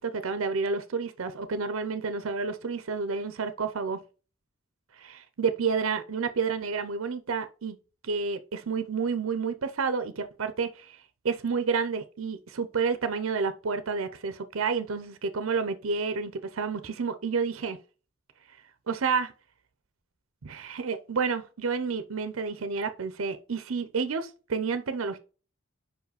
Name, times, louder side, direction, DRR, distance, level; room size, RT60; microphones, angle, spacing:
voice 1, 0.0-4.0 5.0-7.8 8.0-11.0 11.2-17.8 18.9-19.3 20.4-25.2, right 5 dB, 85° right, 0.6 m, -30 dB
5.4 x 4.8 x 5.0 m
head